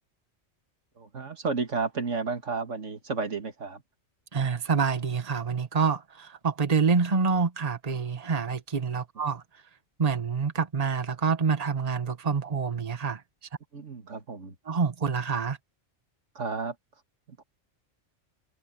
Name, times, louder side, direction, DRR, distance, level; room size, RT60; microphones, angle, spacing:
voice 1, 1.0-3.8 13.7-14.6 16.4-16.8 17.3-17.4, right 4 dB, 80° right, 2.2 m, -32 dB
voice 2, 4.3-9.4 10.0-13.2 14.7-15.6, right 5 dB, 30° right, 1.4 m, -27 dB
omnidirectional pair, 1.3 m